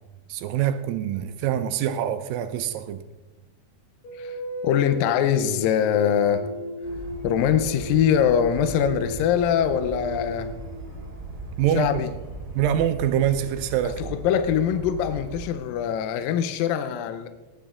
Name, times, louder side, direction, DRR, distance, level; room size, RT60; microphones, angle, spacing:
voice 1, 0.3-3.0 11.6-12.0 12.6-14.1, right 10 dB, 80° right, 2.2 m, -25 dB
sound 1, 4.0-11.4, left 1 dB, 50° left, 5.2 m, -35 dB
voice 2, 4.6-6.6 7.2-10.5 11.7-12.1 13.8-17.3, left 9 dB, 80° left, 2.3 m, -23 dB
sound 2, 6.8-15.5, right 2 dB, 30° right, 2.5 m, -38 dB
18.5 x 9.4 x 3.7 m
omnidirectional pair, 4.2 m